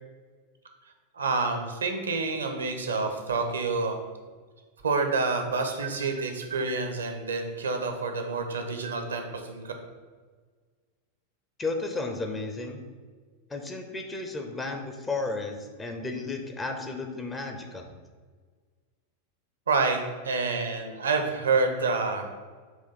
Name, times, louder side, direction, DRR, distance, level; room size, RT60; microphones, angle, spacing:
voice 1, 1.1-4.0 4.8-9.7 19.7-20.0 20.2-22.3, right 4 dB, 70° right, 5 dB, 0.9 m, -28 dB
voice 2, 11.6-12.8 13.5-17.9, left 3 dB, 15° left, 4 dB, 0.7 m, -33 dB
6.3 x 3.0 x 5.8 m, 1.5 s
figure-of-eight pair, 90°, 0 cm